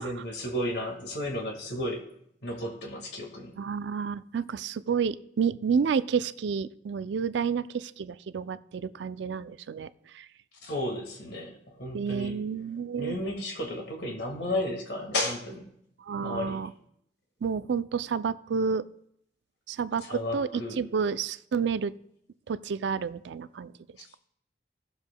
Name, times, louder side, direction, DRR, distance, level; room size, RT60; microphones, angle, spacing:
voice 1, 0.0-2.1 2.4-3.5 10.6-12.3 13.0-15.6 16.2-16.6 20.0-20.8, left 1 dB, 65° left, 2 dB, 1.8 m, -33 dB
voice 2, 3.6-9.9 10.1-10.3 11.9-13.2 16.0-16.7 17.4-18.9 19.7-21.9 22.5-23.7, right 6 dB, 75° right, 15 dB, 0.4 m, -30 dB
17.0 x 7.1 x 2.2 m, 0.72 s
head